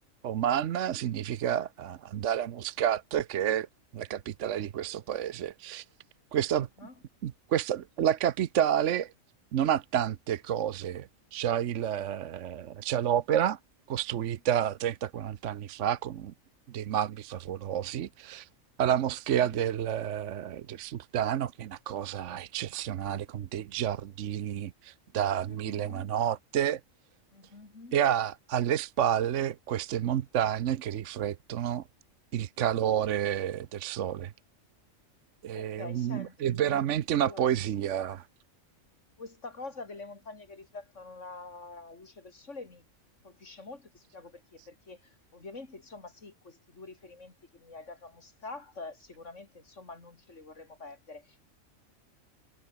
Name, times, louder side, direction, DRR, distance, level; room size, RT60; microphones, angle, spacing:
voice 1, 0.2-3.7 3.9-5.8 6.3-6.7 7.2-9.1 9.5-13.6 13.9-16.3 16.7-18.5 18.8-26.8 27.9-31.8 32.3-34.3 35.4-38.2, right 10 dB, 65° right, 1.1 m, -30 dB
voice 2, 25.5-26.1 27.3-28.0 35.5-37.5 39.2-42.8 43.2-51.4, left 3 dB, 65° left, 3.8 m, -46 dB
omnidirectional pair, 1.4 m